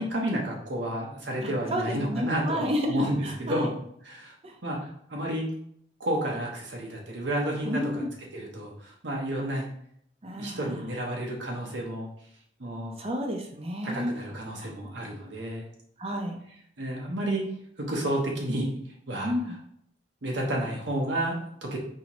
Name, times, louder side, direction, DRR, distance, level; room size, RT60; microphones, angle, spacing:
voice 1, 0.0-3.7 4.0-4.3 4.6-5.5 6.0-8.0 8.3-9.7 10.3-12.1 12.6-12.9 13.8-15.7 16.8-17.5 17.8-18.7 19.1-19.3 20.2-21.8, right 1 dB, 80° right, -1 dB, 0.9 m, -31 dB
voice 2, 1.4-3.7 4.4-4.6 7.6-8.1 10.2-10.8 13.0-14.7 16.0-16.4 19.2-19.5, equal, 35° right, 3 dB, 0.6 m, -31 dB
4.2 x 2.7 x 3.0 m, 0.69 s
head